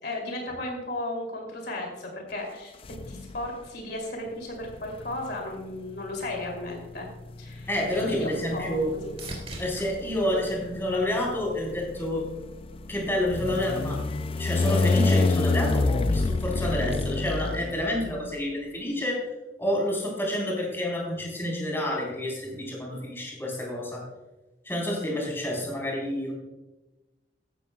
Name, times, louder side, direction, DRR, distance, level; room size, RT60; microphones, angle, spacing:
voice 1, 0.0-2.7 3.1-7.1 7.4-7.7 8.0-9.1, left 1 dB, 65° left, 0 dB, 2.8 m, -35 dB
sound 1, 2.8-3.6 4.6-18.3, left 3 dB, 30° left, 0.4 m, -29 dB
sound 2, 7.4-11.7 12.2-12.8 20.6-20.7, right 2 dB, 35° right, 3.2 m, -45 dB
voice 2, 7.7-8.9 9.6-12.3 12.9-14.0 14.4-19.3 19.6-24.1 24.6-26.3, left 1 dB, 15° left, -3 dB, 4.0 m, -29 dB
15.0 x 12.5 x 2.3 m, 1.1 s
head